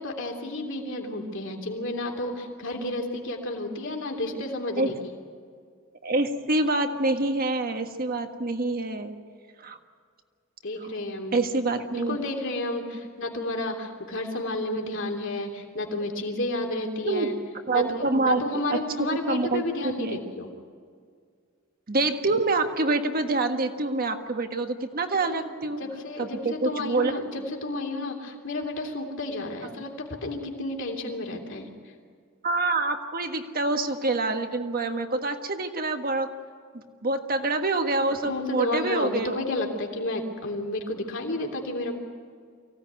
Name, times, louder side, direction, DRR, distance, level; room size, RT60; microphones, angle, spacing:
voice 1, 0.0-4.9 10.6-11.4 11.9-17.3 17.7-20.5 25.2-31.7 38.2-41.9, left 2 dB, 65° left, 1 dB, 3.1 m, -31 dB
voice 2, 6.0-9.2 9.6-9.8 10.8-10.9 11.3-12.2 17.0-17.4 17.7-20.2 21.9-25.8 26.2-27.4 29.6-29.7 32.4-36.3 36.7-39.5, right 2 dB, 45° right, 6 dB, 1.5 m, -26 dB
24.0 x 16.5 x 9.6 m, 2.1 s
head